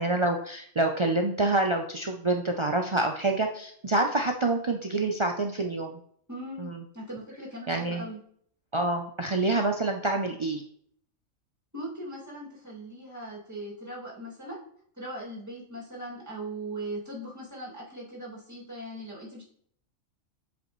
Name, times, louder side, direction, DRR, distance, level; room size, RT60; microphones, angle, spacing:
voice 1, 0.0-6.0 6.6-6.8 7.7-8.0 8.7-10.6, right 2 dB, 50° right, 3 dB, 0.3 m, -27 dB
voice 2, 6.3-8.2 11.7-14.6 15.0-19.4, right 1 dB, 15° right, -5 dB, 2.3 m, -39 dB
7.5 x 5.1 x 3.1 m, 0.62 s
omnidirectional pair, 1.3 m